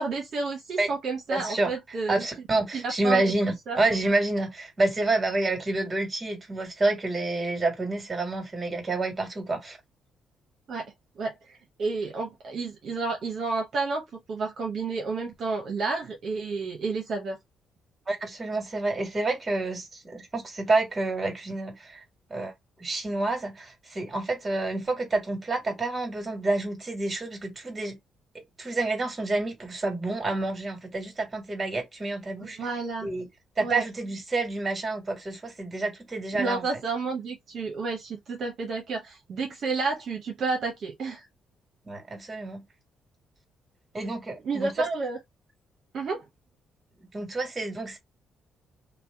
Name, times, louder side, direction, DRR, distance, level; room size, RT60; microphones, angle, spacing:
voice 1, 0.0-2.3 2.7-3.3 3.7-3.8 10.7-10.9 11.2-17.4 32.4-33.1 33.6-33.8 36.3-41.2 44.4-45.2 45.9-46.2, right 4 dB, 60° right, 0.8 m, -31 dB
voice 2, 1.3-1.7 2.1-9.8 18.1-22.0 22.3-22.5 22.8-28.0 28.6-32.6 33.0-33.3 33.6-36.6 41.8-42.6 43.9-44.7 47.1-48.0, right 2 dB, 30° right, 1.5 m, -28 dB
2.8 x 2.1 x 3.3 m
cardioid pair, 90°, 0 cm